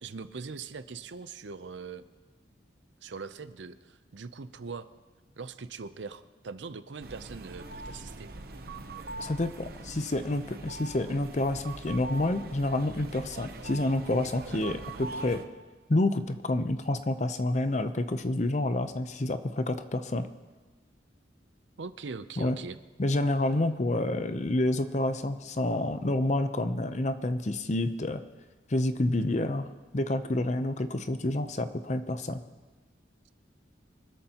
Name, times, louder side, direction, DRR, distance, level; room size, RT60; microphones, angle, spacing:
voice 1, 0.0-2.1 3.0-4.9 5.4-8.3 21.8-22.8, right 4 dB, 85° right, 13 dB, 0.6 m, -41 dB
sound 1, 7.0-15.4, right 2 dB, 55° right, 0.9 m, -42 dB
voice 2, 9.2-15.4 15.9-20.3 22.4-22.6 23.0-28.2 28.7-29.7 29.9-32.4, left 1 dB, 40° left, 10 dB, 0.7 m, -28 dB
24.5 x 13.0 x 3.0 m, 1.3 s
head